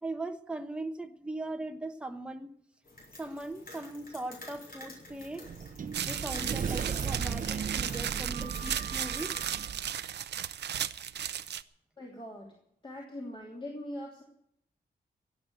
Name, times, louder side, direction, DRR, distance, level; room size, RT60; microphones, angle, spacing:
voice 1, 0.0-2.5 3.2-5.5 6.0-9.4, right 2 dB, 5° right, 1.0 m, -39 dB
sound 1, 2.9-9.5, left 2 dB, 55° left, 6.6 m, -49 dB
Sliding door, 5.1-9.9, right 7 dB, 50° right, 0.7 m, -36 dB
sound 2, 5.9-11.6, right 9 dB, 80° right, 0.7 m, -35 dB
voice 2, 12.0-12.5 12.8-14.2, left 1 dB, 30° left, 3.0 m, -41 dB
17.5 x 8.1 x 9.1 m
wide cardioid pair, 125°, 17 cm